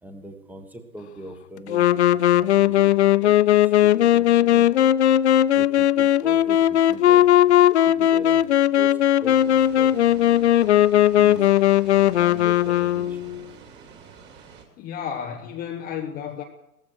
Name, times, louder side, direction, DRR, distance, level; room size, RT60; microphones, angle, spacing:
voice 1, 0.0-4.7 5.5-7.3 7.6-10.4 11.2-11.4 11.9-13.3, right 1 dB, 5° right, 6 dB, 1.5 m, -41 dB
Wind instrument woodwind instrument, 1.7-13.4, left 12 dB, 50° left, 0.4 m, -18 dB
sound 1, 9.3-14.6, right 6 dB, 20° right, 2.6 m, -47 dB
voice 2, 14.8-16.4, left 8 dB, 20° left, 3 dB, 1.0 m, -32 dB
17.0 x 14.5 x 4.7 m, 0.88 s
figure-of-eight pair, 120°, 47 cm